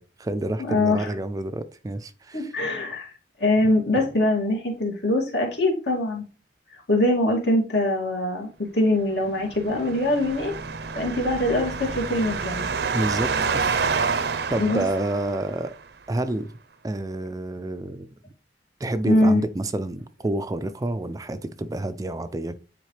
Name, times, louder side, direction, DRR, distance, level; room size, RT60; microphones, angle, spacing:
voice 1, 0.0-2.5 12.9-15.7 16.1-16.5 16.8-18.1 18.8-22.6, right 1 dB, 20° right, 0.4 m, -29 dB
voice 2, 0.6-1.1 2.3-3.1 3.4-6.2 6.9-10.5 10.9-12.7 13.8-13.9 14.6-14.8 19.1-19.4, left 1 dB, 70° left, 2.4 m, -23 dB
sound 1, 9.4-15.7, right 5 dB, 65° right, 0.6 m, -28 dB
9.3 x 4.1 x 3.2 m
head